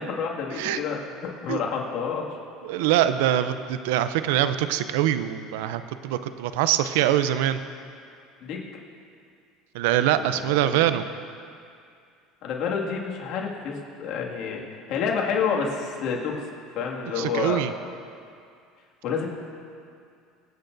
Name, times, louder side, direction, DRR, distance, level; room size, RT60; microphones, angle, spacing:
voice 1, 0.0-2.2 8.4-8.7 10.1-10.8 12.4-13.7 14.0-14.6 14.9-16.3 16.7-17.6 19.0-19.3, left 6 dB, 60° left, -2 dB, 2.1 m, -29 dB
voice 2, 2.6-7.6 9.7-11.0 17.1-17.7, right 12 dB, 85° right, 12 dB, 0.5 m, -23 dB
25.0 x 8.8 x 2.7 m, 2.3 s
supercardioid pair, 105°, 0 cm